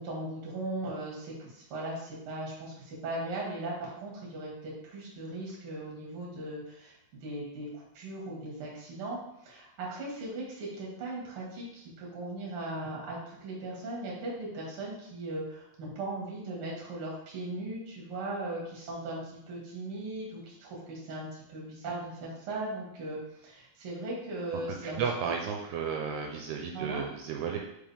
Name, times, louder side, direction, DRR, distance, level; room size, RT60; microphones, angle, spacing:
voice 1, 0.0-25.3 26.7-27.0, right 2 dB, 50° right, -3 dB, 1.8 m, -38 dB
voice 2, 24.7-27.6, right 6 dB, 80° right, 1 dB, 2.5 m, -33 dB
5.5 x 5.2 x 3.5 m, 0.79 s
omnidirectional pair, 5.0 m